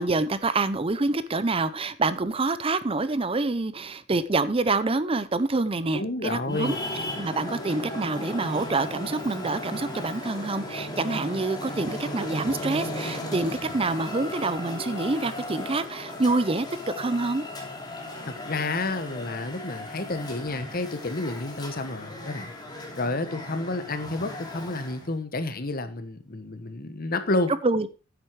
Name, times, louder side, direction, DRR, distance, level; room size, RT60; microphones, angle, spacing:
voice 1, 0.0-6.8 7.2-16.7 17.0-17.4 27.6-27.9, right 3 dB, 30° right, 0.6 m, -26 dB
voice 2, 5.9-6.8 18.3-22.5 22.9-27.5, left 2 dB, 45° left, 1.3 m, -30 dB
Traffic noise roadway noise, 6.5-25.1, left 1 dB, 20° left, 2.8 m, -36 dB
10.0 x 8.0 x 4.6 m
head